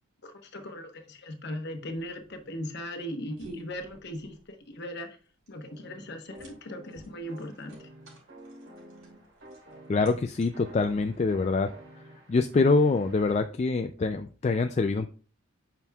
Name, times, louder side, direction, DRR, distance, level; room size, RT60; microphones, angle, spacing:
voice 1, 0.2-5.1 5.5-7.9, equal, 50° left, 6 dB, 1.1 m, -38 dB
sound 1, 1.9-11.4, right 1 dB, 85° right, 3.9 m, -53 dB
sound 2, 5.7-13.4, right 1 dB, 65° right, 3.5 m, -50 dB
voice 2, 9.9-11.7 12.3-15.1, left 3 dB, 30° left, 7 dB, 0.3 m, -25 dB
9.1 x 6.0 x 2.3 m, 0.39 s
head